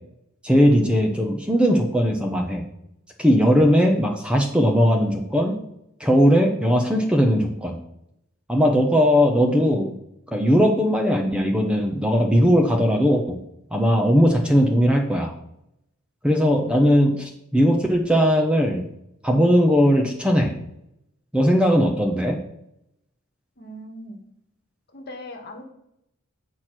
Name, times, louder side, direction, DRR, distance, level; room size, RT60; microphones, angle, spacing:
voice 1, 0.4-2.6 3.2-5.6 6.0-7.8 8.5-9.9 10.3-13.4 13.7-15.3 16.2-18.8 19.2-20.5 21.3-22.4, equal, 5° right, 2 dB, 0.8 m, -19 dB
voice 2, 23.6-24.2 24.9-25.6, left 1 dB, 45° left, 3 dB, 1.4 m, -39 dB
8.4 x 4.5 x 6.0 m, 0.80 s
head